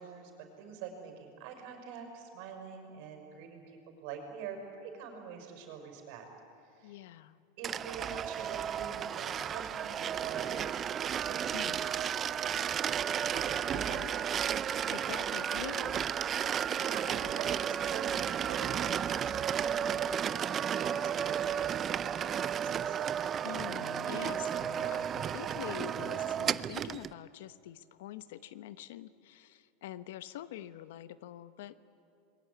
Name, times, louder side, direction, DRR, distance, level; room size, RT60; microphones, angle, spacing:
voice 1, 0.0-6.3 6.6-7.0 7.6-11.8 13.2-15.1 16.8-23.0, right 6 dB, 65° right, 4 dB, 6.0 m, -45 dB
voice 2, 6.8-7.4 11.5-11.8 13.7-14.1 14.9-16.1 23.4-31.8, left 13 dB, 75° left, 13 dB, 1.0 m, -45 dB
sound 1, 7.6-27.1, right 8 dB, 30° right, 0.5 m, -33 dB
27.0 x 22.0 x 9.6 m, 2.7 s
supercardioid pair, 120°, 0 cm